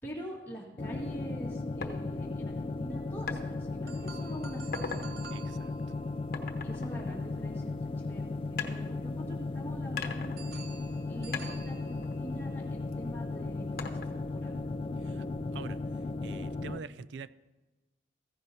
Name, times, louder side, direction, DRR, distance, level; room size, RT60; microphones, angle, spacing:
voice 1, 0.0-5.1 6.6-14.6 15.0-15.4, right 1 dB, 10° left, 1.9 m, -45 dB
sound 1, 0.8-16.8, left 3 dB, 30° left, 0.3 m, -36 dB
sound 2, 1.8-2.0 3.3-3.4 4.0-4.2 4.6-5.1 6.3-7.8 8.6-9.5 10.0-11.0 11.3-12.9 13.8-14.4, left 5 dB, 55° left, 1.1 m, -40 dB
sound 3, 3.9-7.9 10.4-12.7, right 6 dB, 60° right, 1.0 m, -51 dB
voice 2, 5.3-5.7 15.0-15.3 15.5-15.8 16.2-17.3, right 5 dB, 80° right, 0.4 m, -45 dB
15.5 x 15.0 x 2.8 m
head